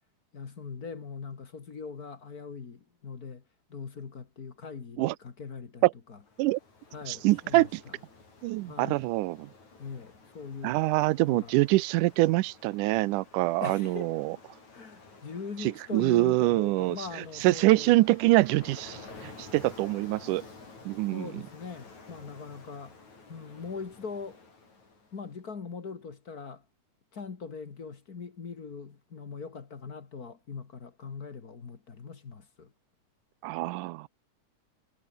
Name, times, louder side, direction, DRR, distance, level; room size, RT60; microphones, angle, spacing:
voice 1, 0.3-3.4 3.7-5.8 6.1-6.2 6.9-7.9 8.7-9.1 9.8-10.8 11.2-11.5 13.6-14.1 14.7-17.9 21.1-23.0 23.3-24.4 25.1-26.6 27.1-32.7, left 5 dB, 35° left, 1.8 m, -41 dB
Ocean, 6.2-25.3, left 3 dB, 65° left, 8.1 m, -52 dB
voice 2, 7.1-7.8 8.4-9.5 10.6-14.4 15.6-20.4 20.9-21.4 33.4-34.1, right 19 dB, 85° right, 2.2 m, -25 dB
omnidirectional pair, 3.6 m